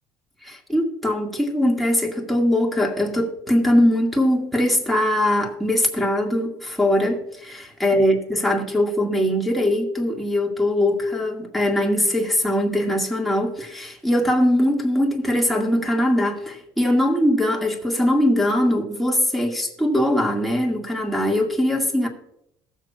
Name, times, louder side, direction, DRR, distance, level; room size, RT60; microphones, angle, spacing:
voice 1, 0.4-22.1, left 1 dB, ahead, 2.2 m, -21 dB
20.0 x 7.5 x 2.5 m
supercardioid pair, 90°, 9 cm